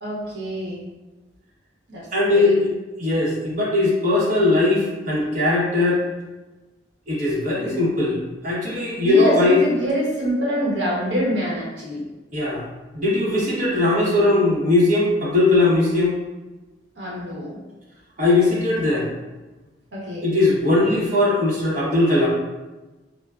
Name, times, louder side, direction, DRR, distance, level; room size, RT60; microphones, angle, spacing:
voice 1, 0.0-0.8 1.9-2.6 9.0-12.1 17.0-17.6 19.9-20.3, equal, 85° right, -5 dB, 1.0 m, -25 dB
voice 2, 2.1-2.7 3.0-6.0 7.1-9.6 12.3-12.6 12.9-16.2 18.2-19.1 20.2-22.3, left 2 dB, 45° right, -6 dB, 1.0 m, -19 dB
5.6 x 2.1 x 2.4 m, 1.2 s
head